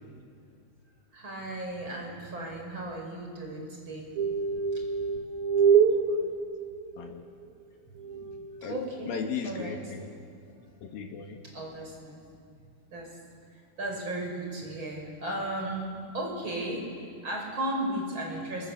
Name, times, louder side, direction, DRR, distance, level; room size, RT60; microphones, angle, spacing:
voice 1, 1.1-4.1 4.7-4.8 8.7-9.1 9.4-9.8 11.4-12.2 12.9-13.2 13.5-18.7, right 1 dB, 25° right, 0 dB, 5.4 m, -35 dB
sound 1, 4.2-7.1 8.0-8.5, right 6 dB, 90° right, 1.7 m, -25 dB
voice 2, 5.8-6.3 7.0-7.2 8.6-8.8 9.1-10.1 10.8-11.4, left 6 dB, 60° left, 3 dB, 2.8 m, -36 dB
29.5 x 24.5 x 7.3 m, 2.4 s
omnidirectional pair, 5.8 m